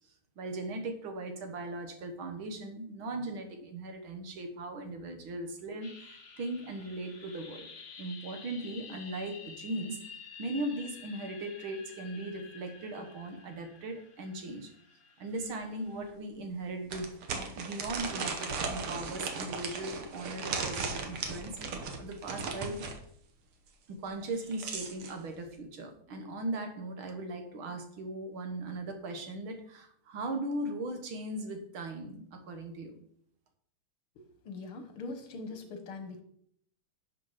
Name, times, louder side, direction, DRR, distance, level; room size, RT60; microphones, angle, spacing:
voice 1, 0.4-7.7 8.0-10.0 10.4-14.7 15.2-22.9 23.9-33.0, right 2 dB, 70° right, 6 dB, 2.2 m, -38 dB
sound 1, 5.8-16.1, left 5 dB, 50° left, 2.3 m, -51 dB
sound 2, 15.4-15.5 16.0-16.1 16.9-23.0 24.2-25.1, right 4 dB, 85° right, 2.3 m, -37 dB
voice 2, 34.5-36.2, left 3 dB, 75° left, 7 dB, 2.3 m, -41 dB
11.5 x 6.9 x 5.0 m, 0.67 s
omnidirectional pair, 2.4 m